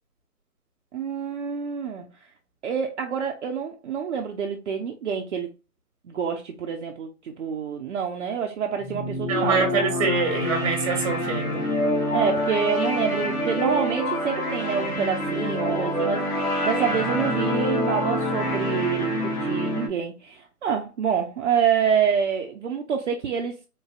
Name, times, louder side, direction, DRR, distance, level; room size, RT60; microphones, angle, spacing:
voice 1, 0.9-2.1 2.6-5.5 6.0-9.7 12.1-23.5, right 7 dB, 55° right, 0.6 m, -27 dB
sound 1, 8.8-19.9, equal, 80° left, 1.4 m, -26 dB
voice 2, 9.3-11.7, right 4 dB, 25° right, 1.2 m, -24 dB
3.8 x 2.7 x 2.3 m
hypercardioid pair, 150°, 45 cm